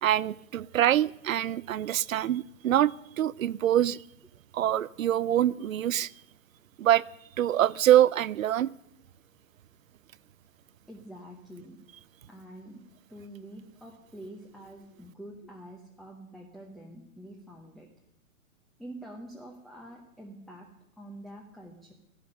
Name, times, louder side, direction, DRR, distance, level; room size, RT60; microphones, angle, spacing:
voice 1, 0.0-4.0 4.5-6.1 6.8-7.0 7.4-8.7, right 12 dB, 70° right, 22 dB, 0.7 m, -25 dB
voice 2, 10.9-11.8 12.3-17.9 18.8-21.9, right 1 dB, ahead, 0 dB, 0.8 m, -46 dB
16.0 x 15.0 x 5.5 m, 0.75 s
hypercardioid pair, 150°, 42 cm